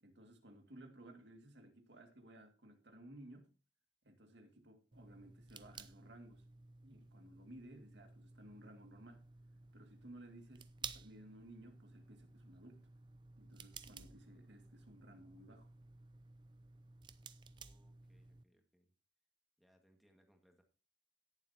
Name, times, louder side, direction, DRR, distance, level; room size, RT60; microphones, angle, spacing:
voice 1, 0.0-3.5 4.0-6.4 6.8-9.2 9.7-12.9 13.4-15.7, right 1 dB, 80° right, 2.3 m, -58 dB
sound 1, 4.9-18.4, right 5 dB, 25° right, 0.5 m, -55 dB
voice 2, 17.6-18.9 19.6-20.6, equal, ahead, 1.8 m, -73 dB
17.5 x 7.4 x 2.9 m
head